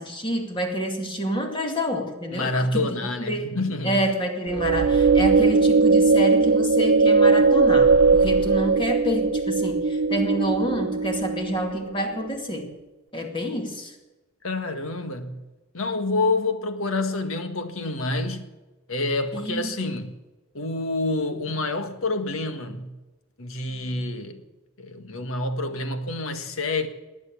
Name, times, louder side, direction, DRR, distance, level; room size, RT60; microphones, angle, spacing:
voice 1, 0.0-3.5 3.8-12.8 13.1-14.0 19.3-19.7, equal, 25° left, 2.2 m, -28 dB
voice 2, 2.3-3.9 14.4-15.4 15.7-18.5 18.9-20.2 20.5-22.9 23.4-24.4 24.8-26.9, left 2 dB, 80° left, 1.6 m, -27 dB
sound 1, 4.5-11.8, right 4 dB, 60° right, 0.5 m, -19 dB
19.5 x 9.5 x 7.4 m
head